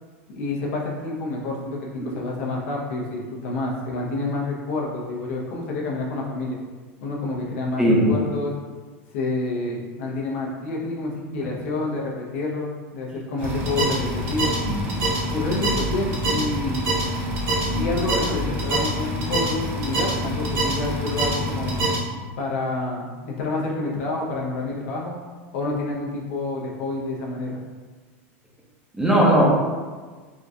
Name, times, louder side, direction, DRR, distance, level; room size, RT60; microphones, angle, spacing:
voice 1, 0.3-6.6 7.0-8.6 9.1-14.5 15.3-16.8 17.7-21.8 22.4-25.2 25.5-27.6, left 2 dB, 70° left, -2 dB, 0.8 m, -28 dB
voice 2, 7.8-8.2 11.4-11.5 28.9-29.4, equal, 5° right, -4 dB, 0.6 m, -18 dB
sound 1, 13.4-22.0, right 1 dB, 50° right, 1.0 m, -25 dB
3.7 x 2.3 x 2.7 m, 1.4 s
supercardioid pair, 135°, 7 cm